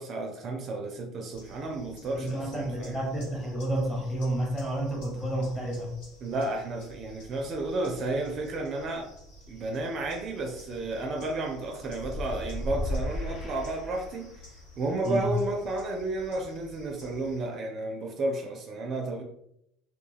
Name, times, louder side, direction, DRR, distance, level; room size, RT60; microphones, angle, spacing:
voice 1, 0.0-3.0 6.2-9.1 9.5-14.3 14.8-19.2, right 2 dB, 45° right, 3 dB, 0.4 m, -32 dB
sound 1, 1.3-17.4, equal, 75° left, 1.4 m, -51 dB
voice 2, 2.1-5.9 15.0-15.3, right 1 dB, 5° left, -1 dB, 1.0 m, -30 dB
sound 2, 11.9-14.5, left 1 dB, 45° left, 0.9 m, -34 dB
2.2 x 2.2 x 3.2 m, 0.78 s
supercardioid pair, 95°, 0 cm